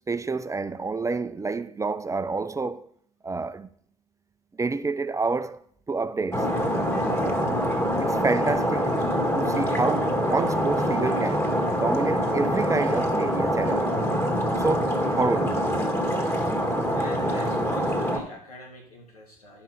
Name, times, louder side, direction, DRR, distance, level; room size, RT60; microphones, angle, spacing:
voice 1, 0.1-2.9 3.2-3.7 4.6-5.6 5.9-6.5 7.2-7.5 8.0-9.0 9.3-13.9 14.6-15.6, right 3 dB, 15° right, 0.5 m, -28 dB
Stream, 6.3-18.2, equal, 15° left, 2.1 m, -25 dB
voice 2, 16.9-19.6, left 2 dB, 90° left, 3.0 m, -44 dB
11.0 x 5.5 x 5.6 m
hypercardioid pair, 65°, 19 cm